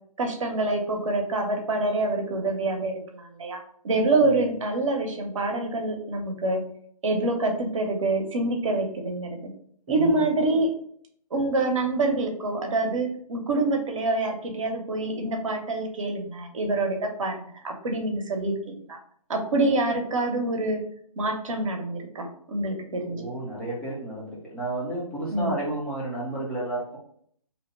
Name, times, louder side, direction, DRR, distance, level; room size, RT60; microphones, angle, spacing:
voice 1, 0.2-3.6 3.8-6.6 7.0-9.5 9.9-10.7 11.3-18.5 18.9-19.0 19.3-20.8 21.2-23.3 25.3-25.6, right 2 dB, 55° right, 3 dB, 0.8 m, -26 dB
voice 2, 9.9-10.2 23.1-27.0, right 2 dB, 5° left, -6 dB, 0.5 m, -32 dB
2.8 x 2.1 x 4.1 m, 0.63 s
figure-of-eight pair, 145°, 19 cm